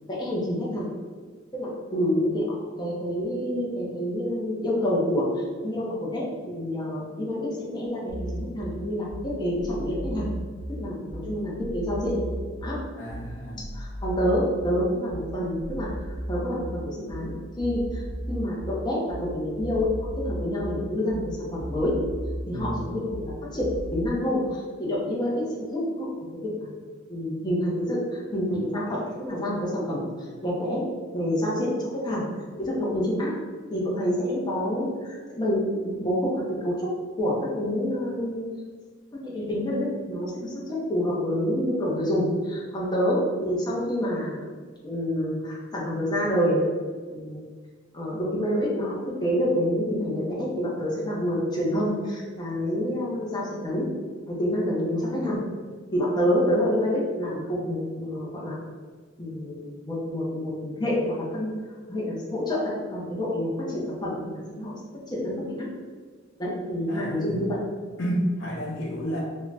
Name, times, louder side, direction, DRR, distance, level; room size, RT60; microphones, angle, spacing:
voice 1, 0.1-1.0 1.5-5.3 5.6-10.3 10.8-12.2 12.6-12.8 13.7-15.9 16.3-18.0 18.3-19.9 20.2-21.9 22.5-26.1 26.4-26.7 27.1-30.8 31.1-31.7 31.9-32.3 32.6-33.3 33.7-36.9 37.2-38.4 39.2-44.5 44.8-46.6 47.1-47.4 47.9-53.9 54.3-55.4 55.9-58.6 59.2-61.5 61.9-64.7 65.1-65.7 66.4-67.6, equal, 20° left, -5 dB, 0.5 m, -27 dB
sound 1, 8.1-24.1, right 1 dB, 70° right, 0.5 m, -35 dB
voice 2, 13.0-13.7 22.5-22.8 66.9-67.5 68.0-69.2, equal, 75° left, -2 dB, 0.6 m, -31 dB
2.4 x 2.1 x 3.2 m, 1.5 s
head